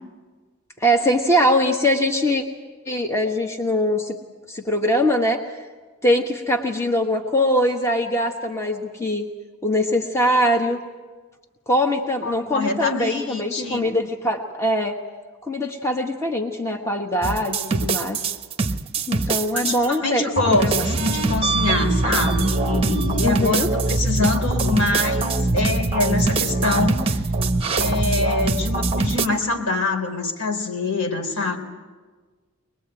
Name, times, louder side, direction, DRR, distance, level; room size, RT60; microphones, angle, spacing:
voice 1, 0.8-2.4 2.9-4.1 4.5-5.4 6.0-9.3 9.6-10.8 11.7-15.0 15.4-18.2 19.1-20.9 23.2-23.7, equal, 10° left, 3 dB, 1.3 m, -22 dB
voice 2, 12.2-13.8 19.5-27.2 27.7-31.6, left 3 dB, 70° left, 3 dB, 3.8 m, -25 dB
sound 1, 17.2-19.9 20.4-29.3, right 3 dB, 25° right, 0.9 m, -22 dB
24.0 x 21.0 x 9.0 m, 1.4 s
head